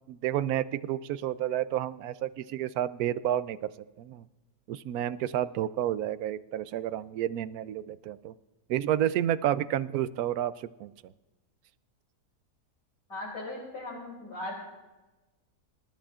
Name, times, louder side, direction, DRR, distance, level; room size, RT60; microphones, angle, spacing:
voice 1, 0.1-3.7 4.0-4.2 4.7-8.3 8.7-11.1, right 11 dB, 75° right, 15 dB, 1.0 m, -30 dB
voice 2, 13.1-14.5, left 2 dB, 60° left, -6 dB, 3.7 m, -38 dB
26.0 x 13.0 x 2.5 m, 1.1 s
omnidirectional pair, 1.7 m